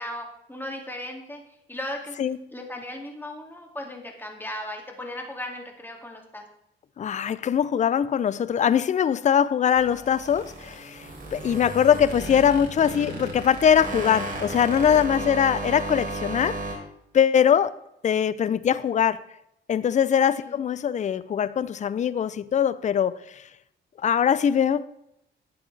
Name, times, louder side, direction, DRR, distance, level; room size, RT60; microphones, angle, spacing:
voice 1, 0.0-1.4 1.7-6.5 15.2-15.4 20.3-20.6, left 1 dB, 10° left, 2 dB, 2.3 m, -37 dB
voice 2, 7.0-16.6 17.1-17.8 18.0-19.2 19.7-23.4 24.0-24.8, left 8 dB, 35° left, 16 dB, 0.5 m, -22 dB
sound 1, 9.7-16.7, right 2 dB, 45° right, 3.5 m, -34 dB
11.0 x 8.4 x 3.3 m, 0.79 s
cardioid pair, 90°, 20 cm